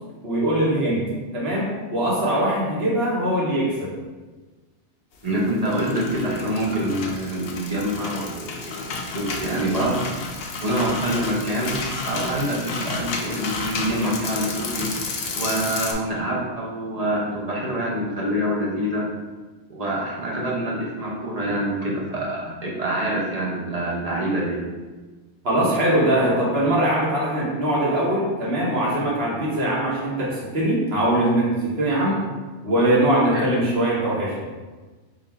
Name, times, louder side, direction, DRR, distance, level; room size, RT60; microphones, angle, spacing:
voice 1, 0.2-3.9 25.4-32.2 32.6-34.3, right 1 dB, 60° right, -5 dB, 1.3 m, -22 dB
voice 2, 5.2-10.0 10.6-11.7 12.0-14.9 15.3-19.1 19.7-24.6 32.0-32.3 33.3-33.5, right 1 dB, 40° right, -4 dB, 0.7 m, -26 dB
sound 1, 5.5-15.9, left 3 dB, 65° left, 0.8 m, -31 dB
4.0 x 2.5 x 4.2 m, 1.3 s
omnidirectional pair, 1.2 m